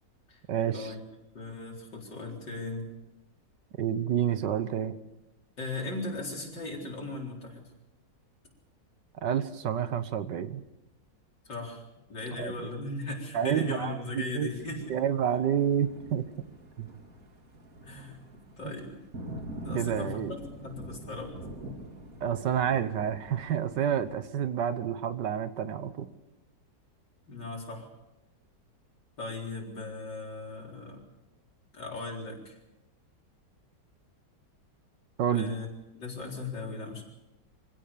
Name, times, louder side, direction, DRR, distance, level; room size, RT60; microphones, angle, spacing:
voice 1, 0.5-0.9 3.8-4.9 9.2-10.6 12.4-12.7 13.3-14.0 14.3-14.5 14.9-16.3 16.8-16.9 18.6-18.7 19.7-20.3 22.2-26.1 35.2-35.5, right 9 dB, 75° right, 12 dB, 1.7 m, -29 dB
voice 2, 1.3-2.9 5.6-7.7 11.4-11.8 12.1-14.9 17.8-19.0 19.6-21.4 27.3-27.9 29.2-31.0 31.7-32.6 35.3-35.7 36.0-37.0, left 3 dB, 75° left, -1 dB, 4.8 m, -38 dB
Thunder, 14.4-24.1, right 1 dB, 50° right, 2.7 m, -45 dB
25.0 x 16.5 x 6.9 m, 0.96 s
omnidirectional pair, 1.9 m